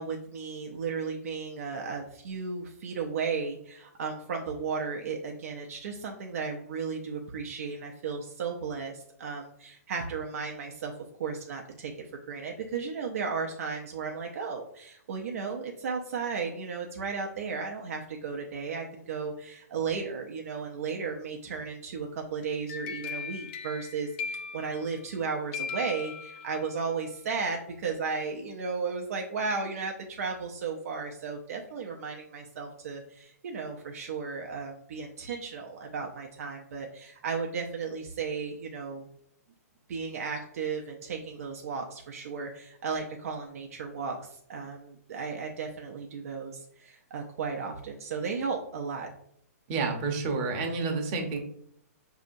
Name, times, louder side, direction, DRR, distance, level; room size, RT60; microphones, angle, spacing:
voice 1, 0.0-10.9 11.2-39.1 39.9-49.1, right 5 dB, 65° right, 1 dB, 0.6 m, -35 dB
sound 1, 22.4-25.2 25.5-26.8, left 6 dB, 35° left, 0.4 m, -39 dB
voice 2, 49.7-51.4, right 4 dB, 35° right, 2 dB, 0.8 m, -29 dB
5.1 x 2.7 x 2.5 m, 0.68 s
hypercardioid pair, 140°, 9 cm